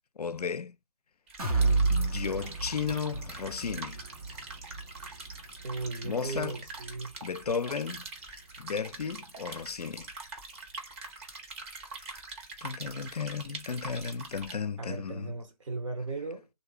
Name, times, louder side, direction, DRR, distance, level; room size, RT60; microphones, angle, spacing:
voice 1, 0.2-0.8 1.9-4.0 6.0-6.6 7.2-8.1 8.6-10.1 12.6-15.3, left 6 dB, 85° left, 0.4 m, -34 dB
sound 1, 1.3-14.5, right 3 dB, 20° right, 0.7 m, -44 dB
sound 2, 1.4-9.2 9.6-9.7 10.1-10.2, right 3 dB, 85° right, 1.5 m, -33 dB
voice 2, 5.6-7.2 14.8-16.5, right 3 dB, 55° right, 1.0 m, -37 dB
3.2 x 2.7 x 2.7 m
figure-of-eight pair, 145°, 19 cm